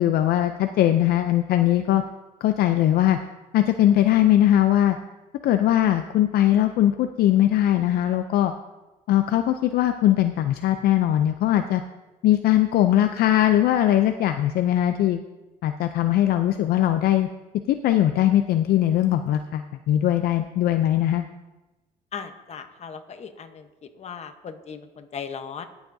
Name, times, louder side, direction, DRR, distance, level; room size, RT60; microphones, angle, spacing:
voice 1, 0.0-2.0 2.4-3.2 3.5-5.0 5.4-8.5 9.1-11.8 12.2-15.2 15.6-17.3 17.7-21.2, left 12 dB, 65° left, 8 dB, 0.5 m, -20 dB
voice 2, 22.1-25.7, left 6 dB, 40° left, 8 dB, 1.0 m, -38 dB
20.0 x 7.0 x 2.7 m, 1.1 s
cardioid pair, 110°, 17 cm